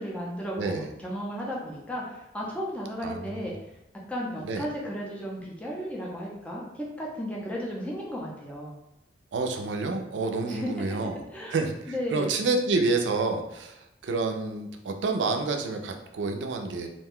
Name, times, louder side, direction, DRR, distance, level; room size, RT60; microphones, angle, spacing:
voice 1, 0.0-3.5 4.1-8.8 10.5-10.7 11.3-11.5 11.9-12.3, equal, 5° left, -4 dB, 0.5 m, -34 dB
voice 2, 0.6-0.9 3.0-3.4 4.4-4.7 9.3-16.9, right 3 dB, 80° right, 5 dB, 0.4 m, -29 dB
2.5 x 2.2 x 3.5 m, 0.85 s
head